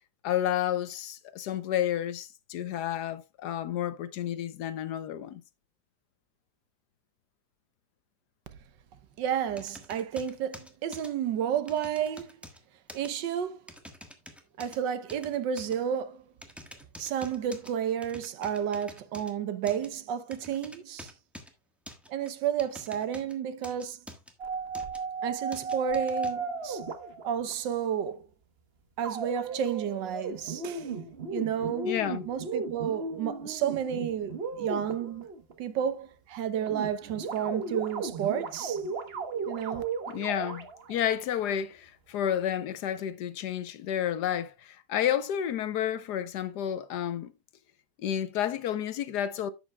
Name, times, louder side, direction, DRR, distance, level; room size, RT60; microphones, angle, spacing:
voice 1, 0.2-5.4 31.8-32.2 40.1-47.3 48.0-49.5, left 10 dB, 75° left, 1.3 m, -31 dB
voice 2, 9.2-12.3 12.9-13.6 14.6-16.2 17.0-21.1 22.1-24.0 25.2-26.8 27.2-28.2 29.0-30.9 31.3-31.9 32.3-35.3 35.6-38.8 39.5-39.8, right 9 dB, 85° right, 1.5 m, -31 dB
sound 1, 9.6-11.1 11.7-12.6 12.9-13.1 13.7-14.8 15.1-15.8 16.4-17.7 18.0-19.3 19.7-19.9 20.3-21.5 21.9-23.3 23.6-24.3 24.7-25.0 25.5-26.3, equal, ahead, 1.1 m, -47 dB
sound 2, 24.4-27.5 29.0-35.5 36.7-41.1, right 4 dB, 40° right, 1.1 m, -35 dB
11.0 x 8.2 x 2.2 m
omnidirectional pair, 1.9 m